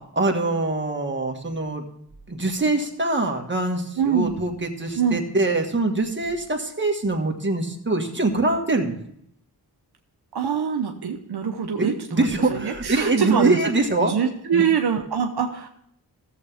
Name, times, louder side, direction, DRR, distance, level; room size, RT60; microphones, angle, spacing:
voice 1, 0.1-1.9 2.3-9.0 11.8-14.1 14.5-14.6, right 2 dB, 25° right, 3 dB, 1.7 m, -23 dB
voice 2, 4.0-4.5 5.0-5.2 10.3-13.6 14.0-15.7, right 7 dB, 70° right, 3 dB, 0.9 m, -24 dB
14.5 x 7.4 x 3.5 m, 0.71 s
cardioid pair, 55°, 41 cm